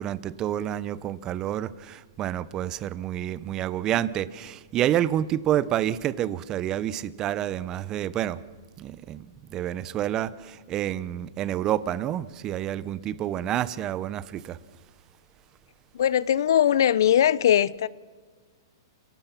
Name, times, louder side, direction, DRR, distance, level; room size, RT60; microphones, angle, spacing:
voice 1, 0.0-8.4 8.8-14.6, right 11 dB, 30° right, 0.8 m, -29 dB
voice 2, 15.9-17.9, left 10 dB, 70° left, 0.8 m, -20 dB
28.5 x 18.0 x 5.9 m
hypercardioid pair, 135°, 2 cm